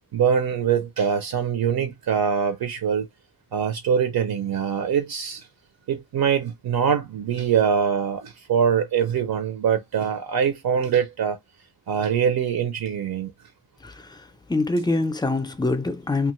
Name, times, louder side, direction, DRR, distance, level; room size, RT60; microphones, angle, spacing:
voice 1, 0.1-3.1 3.5-5.4 5.9-11.4 11.9-13.3, right 7 dB, 75° right, 0.6 m, -23 dB
voice 2, 13.8-16.3, left 2 dB, 10° left, 0.4 m, -25 dB
2.9 x 2.4 x 3.0 m
wide cardioid pair, 165°, 37 cm